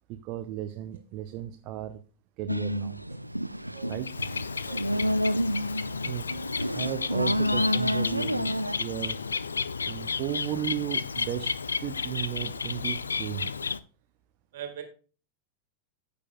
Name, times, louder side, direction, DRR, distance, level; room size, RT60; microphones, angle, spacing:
voice 1, 0.1-2.0 2.4-3.0 3.9-4.2 6.0-6.3 6.7-9.2 9.9-13.5, right 13 dB, 40° right, 0.6 m, -35 dB
sound 1, 2.5-8.8, equal, 90° right, 0.3 m, -29 dB
Bird, 3.8-13.8, left 5 dB, 75° left, 0.4 m, -32 dB
voice 2, 4.6-5.4 14.5-14.8, right 9 dB, 55° right, 2.0 m, -42 dB
14.5 x 6.7 x 2.2 m
figure-of-eight pair, 90°, 0 cm